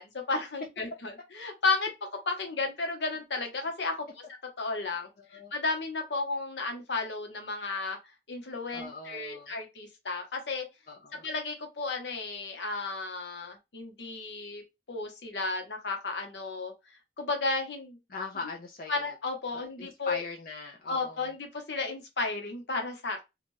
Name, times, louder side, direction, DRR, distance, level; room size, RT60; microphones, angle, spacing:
voice 1, 0.0-1.9 2.3-4.1 4.6-8.0 8.3-10.7 11.1-14.6 14.9-16.7 17.2-18.0 18.9-20.2 20.9-23.2, left 3 dB, 80° left, 0.9 m, -33 dB
voice 2, 5.2-5.5 8.7-9.5 10.9-11.2 18.1-19.1 19.5-21.3, left 3 dB, 50° left, 0.5 m, -41 dB
2.7 x 2.4 x 3.1 m
head